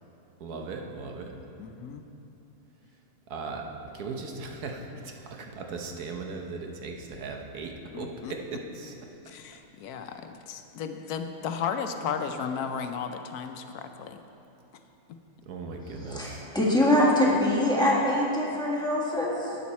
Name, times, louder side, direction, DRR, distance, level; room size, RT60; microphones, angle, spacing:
voice 1, 0.4-1.4 3.3-8.9 15.4-16.5, right 4 dB, 80° right, 2 dB, 1.4 m, -38 dB
voice 2, 1.6-2.0 7.9-8.3 9.3-14.2, left 6 dB, 80° left, 7 dB, 1.1 m, -34 dB
voice 3, 16.0-19.6, left 1 dB, 5° left, -5 dB, 1.5 m, -24 dB
11.5 x 8.0 x 4.2 m, 2.8 s
omnidirectional pair, 1.6 m